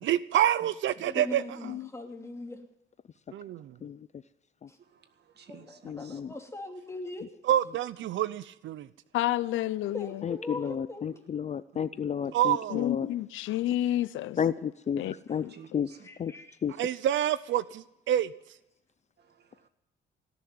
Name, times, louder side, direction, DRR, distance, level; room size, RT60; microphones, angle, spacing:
voice 1, 0.0-1.6 3.3-3.7 7.4-8.9 12.3-12.9 16.8-18.3, right 11 dB, 75° right, 0.7 m, -27 dB
voice 2, 1.0-2.6 5.5-7.4 9.9-11.0 16.0-16.5, left 2 dB, 15° left, 2.8 m, -40 dB
voice 3, 4.8-6.2 11.1-11.2 11.7-11.8 12.2-12.3 15.0-15.2 15.5-16.1 19.2-19.7, right 7 dB, 55° right, 1.8 m, -53 dB
voice 4, 5.8-6.4 7.2-7.3 10.2-13.1 14.4-15.0 15.3-15.4 15.7-15.9 16.2-16.3 16.6-16.8, left 8 dB, 35° left, 0.4 m, -31 dB
voice 5, 9.1-10.3 12.7-14.4 15.0-15.1 15.4-15.5, left 14 dB, 80° left, 0.6 m, -30 dB
18.0 x 7.0 x 9.5 m
cardioid pair, 90°, 20 cm